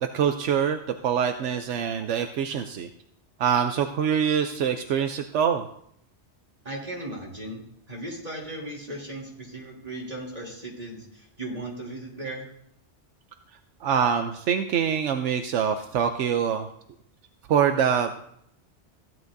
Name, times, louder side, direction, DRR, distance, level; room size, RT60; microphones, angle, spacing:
voice 1, 0.0-2.9 3.4-5.7 13.8-16.7 17.5-18.2, right 8 dB, 80° right, 6 dB, 0.9 m, -24 dB
voice 2, 6.6-7.6 7.9-12.5, right 1 dB, 35° right, -4 dB, 3.0 m, -37 dB
15.0 x 10.5 x 2.6 m, 0.71 s
omnidirectional pair, 1.2 m